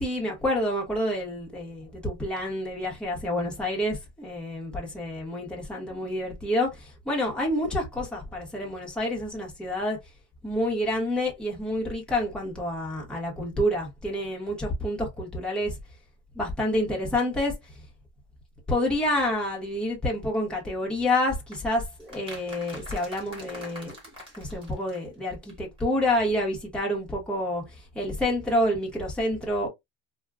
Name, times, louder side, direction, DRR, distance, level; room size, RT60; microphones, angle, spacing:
voice 1, 0.0-10.0 10.4-15.8 16.3-17.5 18.7-24.0 24.4-29.7, left 1 dB, 5° left, 1.0 m, -28 dB
sound 1, 21.5-25.5 25.8-25.9 26.1-26.2, equal, 15° right, 1.4 m, -44 dB
3.5 x 2.2 x 2.3 m
cardioid pair, 160°, 37 cm